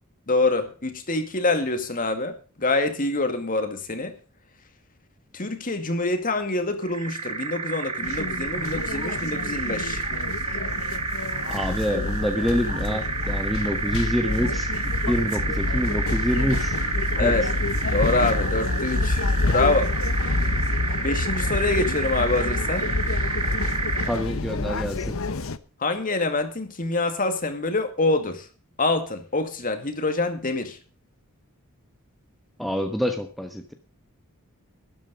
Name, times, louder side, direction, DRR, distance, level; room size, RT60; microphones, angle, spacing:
voice 1, 0.3-4.1 5.3-10.0 17.2-17.4 17.9-19.9 21.0-22.9 25.8-28.5 28.8-30.8, left 2 dB, 40° left, 8 dB, 2.2 m, -25 dB
sound 1, 6.8-24.3, right 4 dB, 25° right, 1.7 m, -30 dB
sound 2, 8.0-25.6, left 2 dB, 65° left, 0.9 m, -27 dB
voice 2, 11.5-14.7 15.1-16.8 17.2-17.4 24.1-25.2 32.6-33.7, equal, ahead, 5 dB, 1.2 m, -26 dB
12.5 x 11.5 x 5.2 m, 0.38 s
head